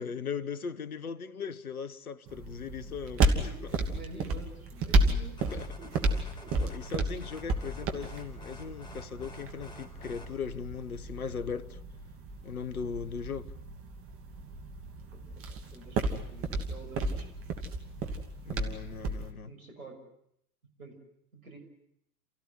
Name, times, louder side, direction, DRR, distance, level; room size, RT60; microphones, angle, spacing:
voice 1, 0.0-3.5 5.5-5.8 6.6-11.8 12.4-13.5 18.4-19.5, left 6 dB, 70° left, 1.3 m, -38 dB
sound 1, 2.3-19.3, right 2 dB, 30° right, 2.9 m, -33 dB
voice 2, 3.9-6.1 6.4-6.6 15.1-15.2 15.5-17.4 19.4-20.1 20.8-21.0 21.3-21.6, right 2 dB, 65° right, 6.7 m, -48 dB
sound 2, 5.4-10.4, left 2 dB, 10° left, 4.5 m, -49 dB
29.0 x 15.5 x 9.8 m
figure-of-eight pair, 100°, 44 cm